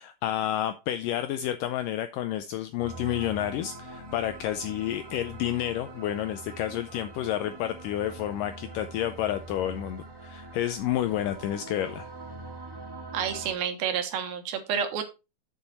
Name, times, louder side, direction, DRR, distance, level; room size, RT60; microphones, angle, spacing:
voice 1, 0.0-12.1, left 12 dB, 85° left, 10 dB, 1.9 m, -30 dB
sound 1, 2.8-13.5, right 2 dB, 15° right, 0.7 m, -43 dB
voice 2, 13.1-15.0, right 8 dB, 75° right, 7 dB, 3.0 m, -29 dB
7.7 x 7.1 x 4.1 m, 0.27 s
omnidirectional pair, 4.4 m